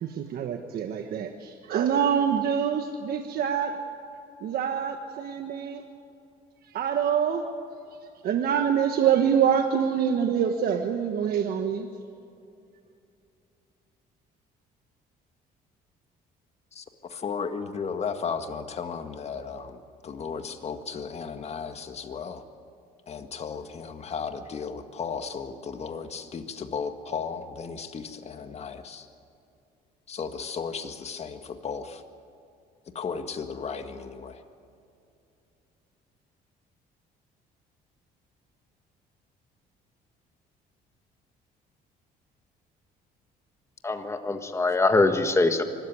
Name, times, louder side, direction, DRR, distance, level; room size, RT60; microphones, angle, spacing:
voice 1, 0.0-3.7 4.4-5.8 6.7-7.4 8.2-11.9, right 8 dB, 65° right, 5 dB, 1.3 m, -25 dB
voice 2, 16.7-22.5 23.1-29.1 30.1-32.0 33.0-34.4, left 6 dB, 40° left, 7 dB, 1.7 m, -35 dB
voice 3, 43.8-45.6, left 3 dB, 15° left, 7 dB, 1.7 m, -23 dB
24.0 x 13.5 x 9.5 m, 2.6 s
cardioid pair, 110°, 17 cm